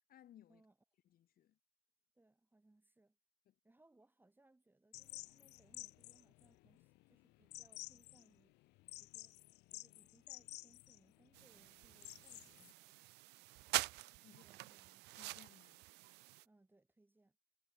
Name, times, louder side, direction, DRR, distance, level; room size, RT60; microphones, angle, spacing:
voice 1, 0.1-0.6 1.0-1.6 3.5-3.6 14.2-14.4 15.1-15.9, left 11 dB, 60° left, 5.8 m, -63 dB
voice 2, 2.2-3.2 3.6-8.6 9.0-13.1 14.3-15.1 16.4-17.4, right 2 dB, 10° right, 5.2 m, -71 dB
sound 1, 4.9-12.7, left 21 dB, 85° left, 0.6 m, -53 dB
sound 2, 11.3-16.5, right 21 dB, 85° right, 0.5 m, -45 dB
cardioid pair, 110°, 17 cm